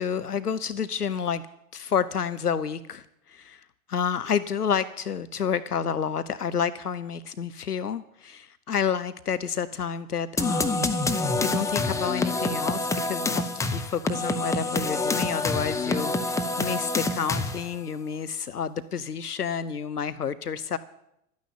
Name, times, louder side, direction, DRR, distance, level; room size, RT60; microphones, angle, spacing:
voice 1, 0.0-1.4 1.7-20.8, left 7 dB, 85° left, 14 dB, 0.6 m, -30 dB
sound 1, 10.4-17.8, left 2 dB, 5° left, 0.8 m, -27 dB
12.5 x 9.4 x 8.3 m, 0.79 s
figure-of-eight pair, 85°, 45 cm